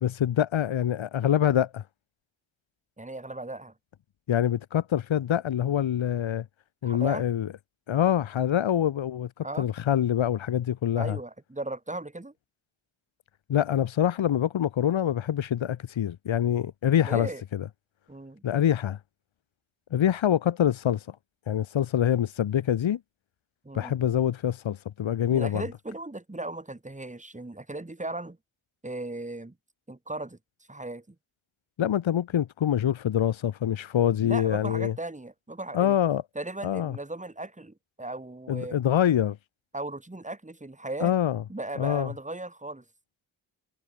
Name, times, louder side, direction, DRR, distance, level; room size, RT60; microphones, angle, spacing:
voice 1, 0.0-1.8 4.3-6.4 6.8-7.5 7.9-9.3 9.6-11.2 13.5-17.7 18.4-19.0 19.9-21.2 21.5-23.0 23.7-25.6 31.8-34.9 35.7-36.2 36.6-37.0 38.5-39.4 41.0-41.4 41.8-42.1, left 10 dB, 75° left, 1.5 m, -25 dB
voice 2, 3.0-3.7 6.8-7.2 9.4-9.7 11.0-12.3 17.0-17.4 18.1-18.4 23.6-24.0 25.3-28.4 28.8-29.5 29.9-30.4 30.7-31.1 34.2-36.0 36.3-38.8 39.7-41.1 41.5-42.8, right 2 dB, 15° right, 3.1 m, -37 dB
cardioid pair, 55°, 47 cm